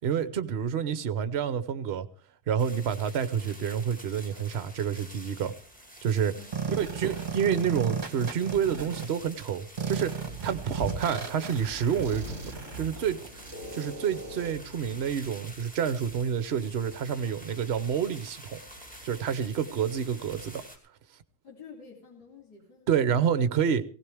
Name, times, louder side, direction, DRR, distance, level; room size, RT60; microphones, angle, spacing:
voice 1, 0.0-2.1 2.5-5.5 6.0-6.3 6.8-18.6 19.0-20.6 22.9-23.8, right 8 dB, 50° right, 1.0 m, -29 dB
sound 1, 2.6-20.8, equal, 5° left, 2.6 m, -49 dB
voice 2, 6.3-6.8 21.4-23.5, left 5 dB, 90° left, 3.8 m, -50 dB
sound 2, 6.5-9.0 9.8-14.5, right 5 dB, 30° right, 1.5 m, -35 dB
sound 3, 10.1-20.7, right 1 dB, 45° left, 2.9 m, -47 dB
17.5 x 16.5 x 3.5 m
omnidirectional pair, 1.6 m